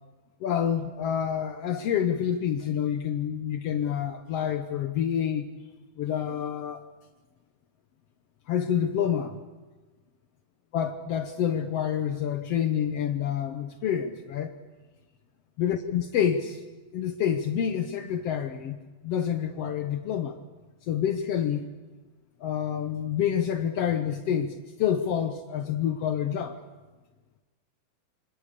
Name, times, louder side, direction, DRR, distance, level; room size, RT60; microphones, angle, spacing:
voice 1, 0.4-5.5 6.0-6.8 8.5-9.4 10.7-14.5 15.6-16.6 16.9-20.4 20.8-21.7 22.4-26.6, left 9 dB, 85° left, 8 dB, 1.3 m, -28 dB
26.5 x 25.5 x 6.7 m, 1.3 s
omnidirectional pair, 4.2 m